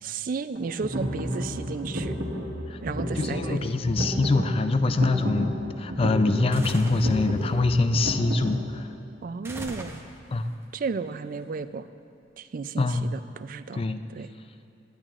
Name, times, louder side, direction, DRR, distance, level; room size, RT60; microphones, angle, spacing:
voice 1, 0.0-2.2 2.8-3.7 9.2-10.1 10.7-11.9 12.4-13.8 14.1-14.3, right 5 dB, 45° right, 12 dB, 0.3 m, -33 dB
sound 1, 0.5-8.7, equal, 75° right, 1.4 m, -31 dB
voice 2, 3.2-8.9 10.3-10.5 12.8-13.1 13.7-14.0, left 3 dB, 30° left, 9 dB, 0.4 m, -24 dB
sound 2, 6.5-7.1 9.4-10.4, right 1 dB, 15° right, 0.7 m, -38 dB
18.0 x 10.5 x 2.4 m, 2.6 s
head